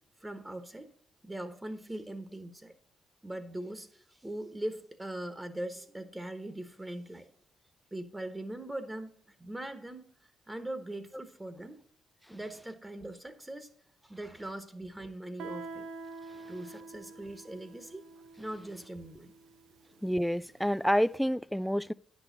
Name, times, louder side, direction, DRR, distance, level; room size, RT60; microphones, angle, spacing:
voice 1, 0.2-0.9 1.2-2.7 3.2-7.3 7.9-10.1 10.5-11.8 12.3-13.7 14.0-15.9 16.5-18.0 18.4-19.3, right 1 dB, 15° right, 1.2 m, -41 dB
Guitar, 15.4-20.8, right 3 dB, 80° right, 0.7 m, -47 dB
voice 2, 20.0-21.9, equal, ahead, 0.3 m, -28 dB
9.6 x 6.3 x 4.0 m
supercardioid pair, 55°, 0 cm